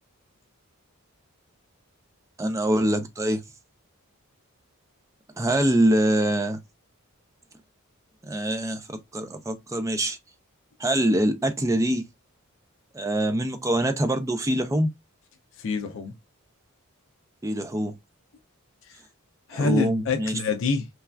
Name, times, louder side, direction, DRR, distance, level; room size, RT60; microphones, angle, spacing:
voice 1, 2.4-3.4 5.4-6.6 8.3-8.9 9.1-10.2 10.8-12.0 12.9-14.9 17.4-17.9 19.5-20.3, right 1 dB, 15° right, 0.4 m, -24 dB
voice 2, 15.6-16.1 18.9-19.0 19.5-20.9, left 4 dB, 60° left, 0.4 m, -26 dB
3.2 x 2.3 x 2.2 m
head